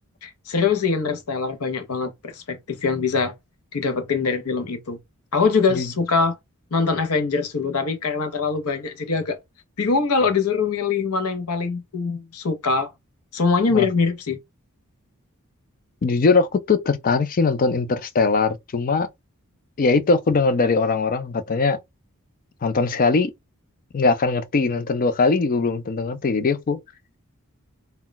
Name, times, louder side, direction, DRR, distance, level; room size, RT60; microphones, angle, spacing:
voice 1, 0.2-3.3 3.7-5.0 5.3-6.4 6.7-9.4 9.8-12.9 13.3-14.4, left 4 dB, 75° left, 0.7 m, -23 dB
voice 2, 16.0-19.1 19.8-21.8 22.6-23.3 23.9-26.8, left 4 dB, 40° left, 0.4 m, -21 dB
2.2 x 2.2 x 3.8 m
head